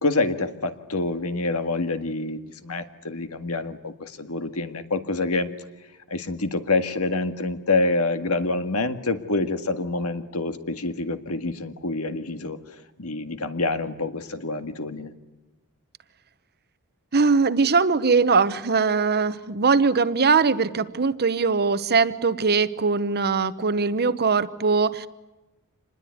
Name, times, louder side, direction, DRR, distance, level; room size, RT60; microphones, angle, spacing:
voice 1, 0.0-5.5 6.1-12.6 13.0-15.1, left 2 dB, 75° left, 9 dB, 1.9 m, -27 dB
voice 2, 17.1-25.1, right 4 dB, 45° right, 14 dB, 1.0 m, -21 dB
26.5 x 20.5 x 9.5 m, 1.1 s
head